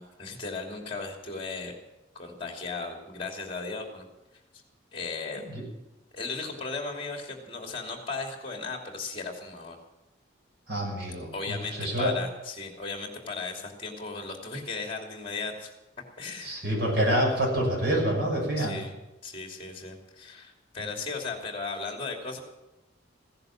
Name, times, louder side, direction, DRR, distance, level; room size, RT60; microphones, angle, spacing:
voice 1, 0.0-1.7 2.1-4.1 4.9-5.4 6.1-9.8 11.3-15.7 16.2-16.6 18.6-18.9 19.2-22.4, left 4 dB, 30° left, 2 dB, 2.9 m, -36 dB
voice 2, 10.7-12.1 16.4-18.8, right 1 dB, 60° right, -2 dB, 6.3 m, -27 dB
16.0 x 10.5 x 7.5 m, 1.0 s
head